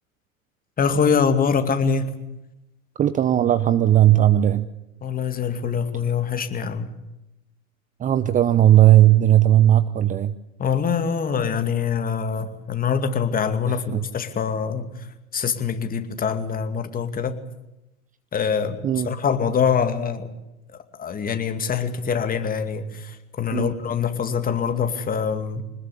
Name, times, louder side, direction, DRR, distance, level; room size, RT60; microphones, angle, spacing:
voice 1, 0.8-2.1 5.0-6.9 10.6-14.9 15.3-17.4 18.3-18.8 19.0-20.3 21.0-25.6, left 6 dB, 20° left, 8 dB, 2.4 m, -24 dB
voice 2, 3.0-4.7 8.0-10.3 13.9-14.0 18.8-19.1 23.5-23.7, right 12 dB, 20° right, 13 dB, 0.8 m, -16 dB
25.0 x 20.0 x 8.5 m, 0.91 s
hypercardioid pair, 100°, 41 cm